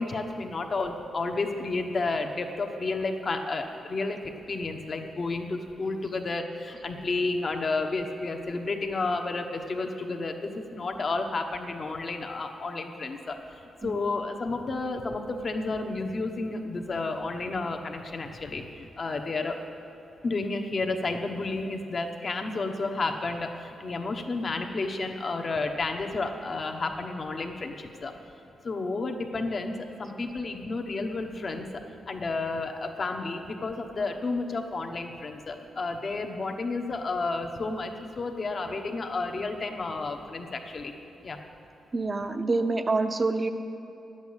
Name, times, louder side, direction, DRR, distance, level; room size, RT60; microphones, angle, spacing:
voice 1, 0.0-4.2 4.5-13.4 13.8-19.6 20.2-28.1 28.6-31.7 32.1-40.9 41.2-41.4, left 3 dB, 45° left, 4 dB, 1.1 m, -31 dB
voice 2, 41.9-43.5, right 3 dB, 30° right, 8 dB, 0.7 m, -27 dB
11.0 x 8.1 x 8.8 m, 2.9 s
cardioid pair, 95°, 0 cm